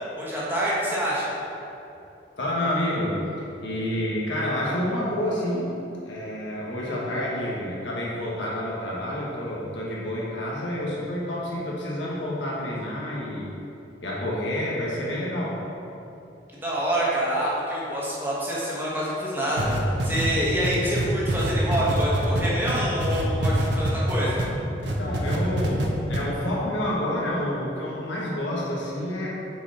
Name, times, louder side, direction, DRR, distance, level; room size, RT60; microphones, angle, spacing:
voice 1, 0.1-1.3 16.6-24.4, equal, 10° right, -7 dB, 1.4 m, -26 dB
voice 2, 2.4-3.2 3.6-5.7 6.0-13.5 14.0-15.6 24.6-29.3, left 1 dB, 85° left, -5 dB, 1.5 m, -29 dB
sound 1, 19.6-24.5 24.8-25.9 26.1-26.2, right 1 dB, 70° right, 0.8 m, -25 dB
6.6 x 4.9 x 4.2 m, 2.8 s
head